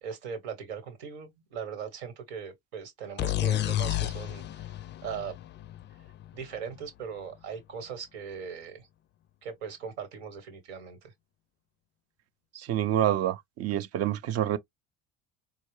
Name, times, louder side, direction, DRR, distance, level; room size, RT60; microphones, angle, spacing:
voice 1, 0.0-4.6 5.0-5.4 6.3-8.9 9.4-11.1, right 7 dB, 90° right, 1.5 m, -39 dB
sound 1, 3.2-6.9, left 13 dB, 35° left, 0.4 m, -31 dB
voice 2, 12.5-14.6, right 11 dB, 50° right, 0.6 m, -27 dB
4.3 x 2.4 x 3.0 m
supercardioid pair, 90°, 31 cm